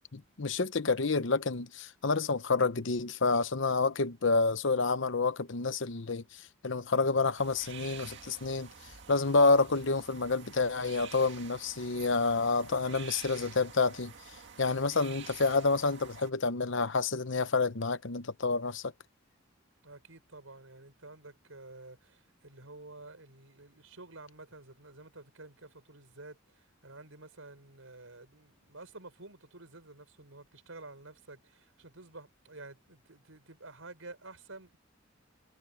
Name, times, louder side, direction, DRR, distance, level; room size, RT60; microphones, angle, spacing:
voice 1, 0.1-8.7 9.1-14.1 14.6-18.9, left 3 dB, 65° left, 0.9 m, -28 dB
sound 1, 7.4-16.3, right 7 dB, 60° right, 2.1 m, -49 dB
voice 2, 19.8-34.8, right 2 dB, 85° right, 5.2 m, -50 dB
head